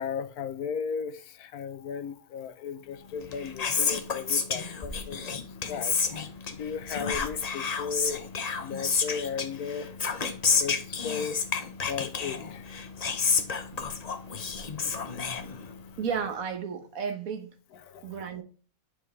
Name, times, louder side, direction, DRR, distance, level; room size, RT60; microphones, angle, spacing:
voice 1, 0.0-5.4 5.7-6.0 6.5-8.2 8.6-9.9 10.6-11.4 11.9-12.7 14.9-15.0 17.8-18.1, left 6 dB, 80° left, 1.2 m, -35 dB
Whispering, 3.1-16.0, left 5 dB, 45° left, 0.5 m, -30 dB
voice 2, 16.0-17.5 18.0-18.4, right 6 dB, 65° right, 1.4 m, -33 dB
8.5 x 4.9 x 3.1 m
omnidirectional pair, 1.6 m